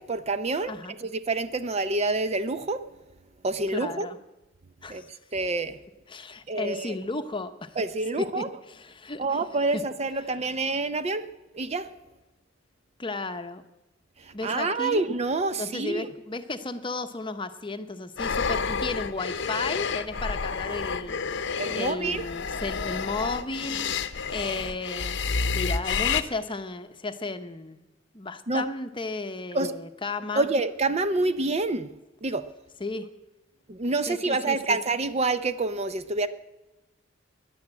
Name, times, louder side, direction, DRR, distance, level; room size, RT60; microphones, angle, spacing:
voice 1, 0.0-2.9 3.4-4.1 4.9-5.0 5.3-5.8 6.5-7.0 7.8-8.5 9.2-11.3 11.5-11.9 14.2-16.1 21.6-22.2 28.5-28.7 29.5-29.8 30.3-31.9 32.2-32.5 33.7-36.3, right 3 dB, 35° right, 12 dB, 0.6 m, -27 dB
voice 2, 3.7-4.2 4.8-5.1 6.1-7.7 8.2-8.5 8.7-9.4 9.7-9.8 13.0-13.6 14.3-15.0 15.5-25.2 25.5-27.8 28.1-30.5 32.8-33.1 34.1-34.8, left 3 dB, 25° left, 9 dB, 0.8 m, -34 dB
Zombie breathing, 18.2-26.2, left 5 dB, 65° left, 0.8 m, -29 dB
13.5 x 10.5 x 8.9 m, 1.0 s
head